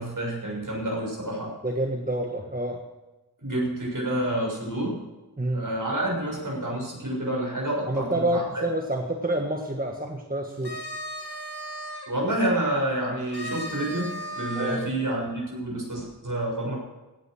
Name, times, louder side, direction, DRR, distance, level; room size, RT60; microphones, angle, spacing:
voice 1, 0.0-1.5 3.4-5.0 5.5-8.6 12.1-16.8, right 1 dB, 55° right, -1 dB, 6.8 m, -28 dB
voice 2, 1.6-2.8 5.4-5.7 7.9-10.8 14.5-14.8, right 1 dB, 25° right, 2 dB, 1.5 m, -28 dB
sound 1, 10.5-12.1 13.3-14.9, right 1 dB, 80° left, 2.6 m, -36 dB
17.0 x 9.4 x 6.4 m, 1.1 s
wide cardioid pair, 50°, 38 cm